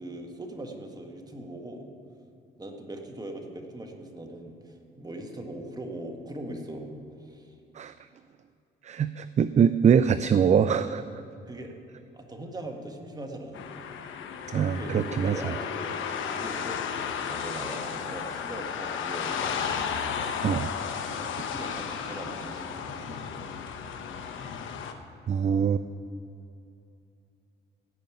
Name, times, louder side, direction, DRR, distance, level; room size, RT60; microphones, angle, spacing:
voice 1, 0.0-1.9 2.6-6.9 7.2-7.6 11.5-11.7 12.1-13.7 14.6-19.9 21.1-23.5, right 1 dB, 20° right, 3 dB, 1.8 m, -40 dB
voice 2, 8.8-11.0 14.5-15.5 20.4-20.7 25.3-25.8, right 7 dB, 35° right, 13 dB, 0.4 m, -23 dB
sound 1, 13.5-24.9, left 7 dB, 80° left, 1.0 m, -34 dB
16.0 x 5.4 x 9.1 m, 2.6 s
cardioid pair, 90°, 20 cm